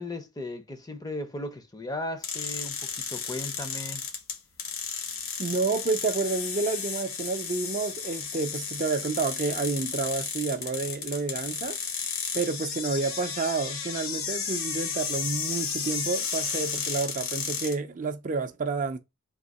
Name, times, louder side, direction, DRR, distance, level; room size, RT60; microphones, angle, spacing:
voice 1, 0.0-4.1, left 2 dB, 15° left, 0.5 m, -36 dB
sound 1, 2.2-17.8, left 6 dB, 70° left, 1.1 m, -33 dB
voice 2, 5.4-11.8 12.3-19.0, right 4 dB, 35° right, 0.4 m, -29 dB
3.6 x 2.8 x 4.0 m
head